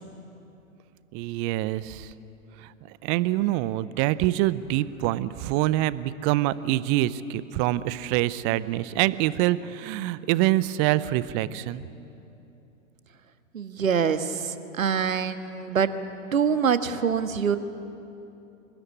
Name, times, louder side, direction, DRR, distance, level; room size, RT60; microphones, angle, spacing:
voice 1, 1.1-2.1 3.0-11.8, right 15 dB, 25° right, 18 dB, 0.6 m, -25 dB
voice 2, 13.5-15.9 16.3-17.6, right 7 dB, 75° right, 11 dB, 1.5 m, -25 dB
26.0 x 20.5 x 8.6 m, 2.9 s
figure-of-eight pair, 110°, 40 cm